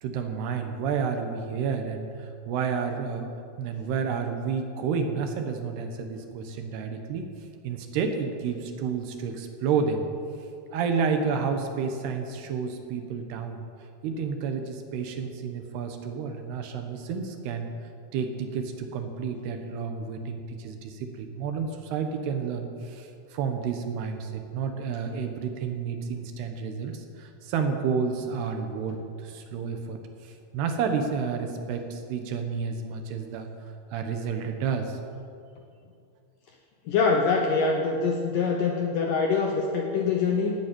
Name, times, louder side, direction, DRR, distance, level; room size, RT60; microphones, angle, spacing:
voice 1, 0.0-3.3 3.6-7.3 7.6-10.1 10.7-13.7 14.0-17.7 18.1-33.5 33.9-35.0, right 6 dB, 70° right, 6 dB, 3.0 m, -30 dB
voice 2, 36.9-40.5, left 4 dB, 80° left, 2 dB, 1.9 m, -24 dB
17.5 x 9.4 x 8.6 m, 2.4 s
omnidirectional pair, 5.3 m